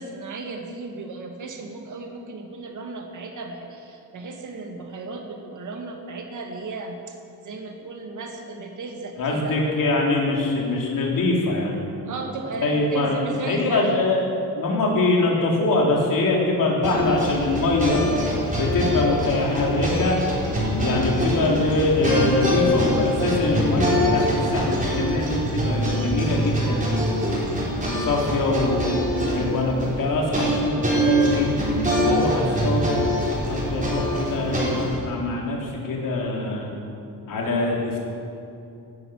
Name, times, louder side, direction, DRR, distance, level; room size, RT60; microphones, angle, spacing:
voice 1, 0.0-7.2 7.4-9.7 12.0-13.9 20.8-21.2 32.3-32.8, right 3 dB, 50° right, 3 dB, 1.9 m, -35 dB
voice 2, 9.2-11.8 12.6-13.2 13.5-14.2 14.5-18.0 18.5-20.2 20.8-27.3 27.9-28.9 29.3-31.5 32.0-33.0 33.5-36.7 37.3-38.0, left 2 dB, 60° left, -2 dB, 3.4 m, -23 dB
sound 1, 16.8-34.9, equal, 20° right, 4.1 m, -24 dB
17.0 x 11.5 x 6.3 m, 2.6 s
wide cardioid pair, 170°, 38 cm